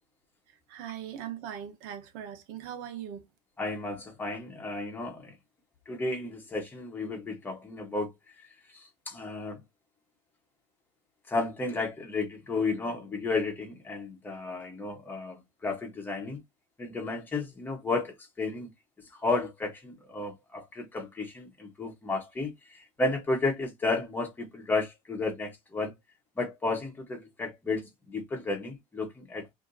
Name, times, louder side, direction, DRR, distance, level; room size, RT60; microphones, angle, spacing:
voice 1, 0.7-3.3, right 9 dB, 90° right, 1.1 m, -40 dB
voice 2, 3.6-5.3 5.8-8.1 8.7-9.6 11.3-16.4 16.8-18.7 19.1-25.9 26.4-29.5, left 3 dB, 15° left, 1.4 m, -33 dB
4.8 x 3.0 x 2.7 m
cardioid pair, 150°, 13 cm